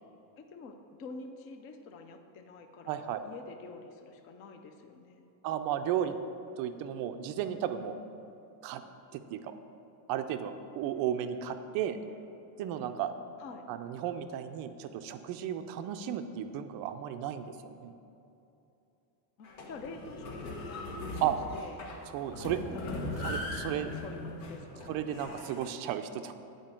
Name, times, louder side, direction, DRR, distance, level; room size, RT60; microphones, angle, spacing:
voice 1, 0.4-5.3 13.4-13.6 19.4-21.8 22.3-23.4 23.8-25.0, left 3 dB, 30° left, 6 dB, 0.3 m, -47 dB
voice 2, 2.9-3.2 5.4-6.2 6.6-8.0 8.6-8.8 9.1-9.5 10.1-12.0 12.6-13.1 13.7-17.9 21.2-21.3 22.1-22.6 23.2-23.9 24.9-26.3, right 10 dB, 50° right, 8 dB, 0.5 m, -34 dB
sound 1, 19.4-25.7, left 1 dB, 60° left, 1.6 m, -39 dB
8.8 x 5.2 x 7.4 m, 2.9 s
cardioid pair, 165°, 49 cm